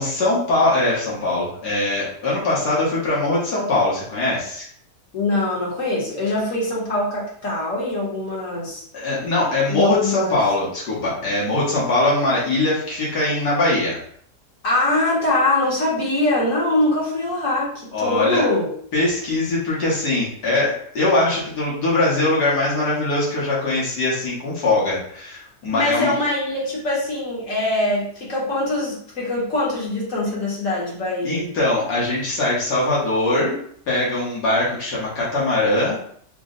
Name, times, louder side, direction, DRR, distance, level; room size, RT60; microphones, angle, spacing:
voice 1, 0.0-4.7 8.9-14.0 17.9-18.5 18.9-26.1 31.2-33.6 33.9-36.1, left 2 dB, 80° left, -7 dB, 1.7 m, -21 dB
voice 2, 5.1-8.8 9.7-10.4 14.6-18.7 25.7-31.5, left 2 dB, 55° left, -4 dB, 1.4 m, -23 dB
3.9 x 2.1 x 3.7 m, 0.62 s
omnidirectional pair, 1.7 m